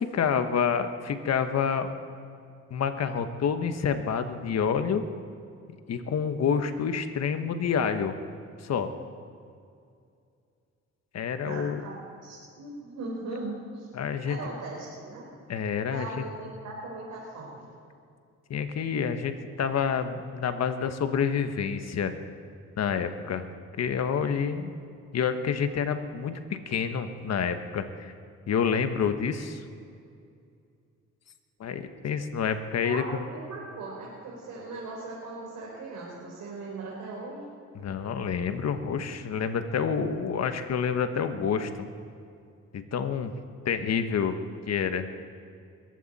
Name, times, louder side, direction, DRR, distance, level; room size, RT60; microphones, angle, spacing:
voice 1, 0.0-1.9 2.7-5.0 5.9-8.2 8.6-8.9 11.1-11.8 13.9-14.4 15.5-16.2 18.5-22.1 22.8-23.5 23.8-24.7 25.1-26.4 26.7-28.1 28.5-29.6 31.6-33.2 37.7-41.7 42.7-43.3 43.6-44.4 44.7-45.1, left 6 dB, 60° left, 8 dB, 1.3 m, -28 dB
voice 2, 11.4-13.9 14.3-15.3 15.9-17.7 32.8-37.5, right 2 dB, 75° right, -4 dB, 4.0 m, -39 dB
22.0 x 15.5 x 4.2 m, 2.4 s
cardioid pair, 90°, 30 cm